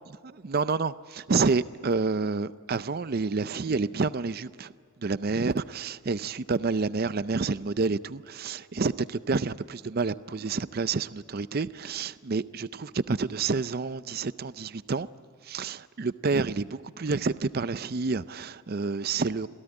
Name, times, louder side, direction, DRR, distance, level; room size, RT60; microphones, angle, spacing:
voice 1, 0.2-4.7 5.0-15.1 15.4-19.5, right 4 dB, 45° right, 15 dB, 0.5 m, -29 dB
27.0 x 17.0 x 9.8 m, 2.2 s
head